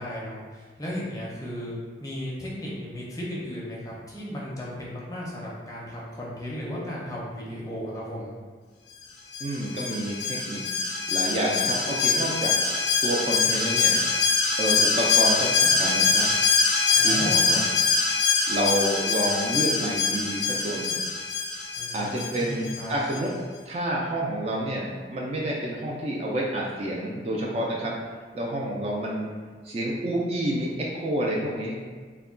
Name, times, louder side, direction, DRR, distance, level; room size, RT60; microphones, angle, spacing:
voice 1, 0.0-1.7 2.0-8.3 16.9-17.6 21.8-22.9, left 1 dB, 20° left, -5 dB, 0.5 m, -35 dB
Alarm, 9.3-22.8 23.1-23.2, left 5 dB, 70° left, 0.5 m, -24 dB
voice 2, 9.4-10.7 11.1-12.6 13.0-14.0 14.6-16.2 17.0-17.6 18.5-21.0 21.9-23.3 23.7-27.9 28.3-29.3 29.6-31.8, right 1 dB, 35° right, -3 dB, 0.3 m, -29 dB
2.2 x 2.2 x 3.6 m, 1.5 s
head